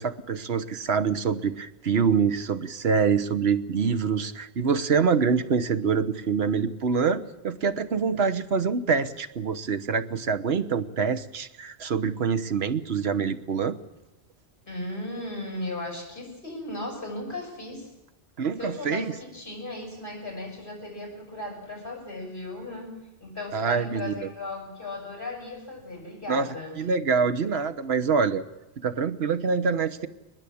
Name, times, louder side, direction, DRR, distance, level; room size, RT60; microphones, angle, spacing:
voice 1, 0.0-13.8 18.4-19.1 23.5-24.3 26.3-26.5 26.8-28.4 28.8-30.1, right 5 dB, 70° right, 11 dB, 1.3 m, -25 dB
voice 2, 14.6-17.9 18.6-22.9 23.2-26.8, left 2 dB, 55° left, 2 dB, 6.9 m, -36 dB
22.0 x 20.5 x 8.6 m, 0.95 s
omnidirectional pair, 1.1 m